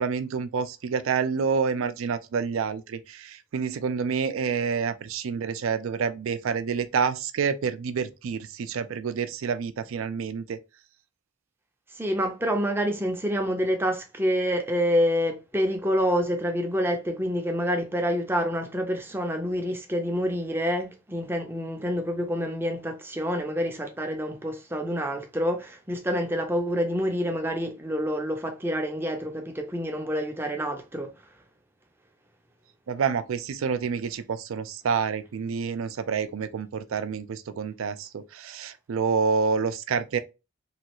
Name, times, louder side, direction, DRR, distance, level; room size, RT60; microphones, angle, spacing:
voice 1, 0.0-10.6 32.9-40.2, right 6 dB, 75° right, 0.4 m, -28 dB
voice 2, 11.9-31.1, equal, 10° right, 0.5 m, -27 dB
3.0 x 2.3 x 2.9 m
head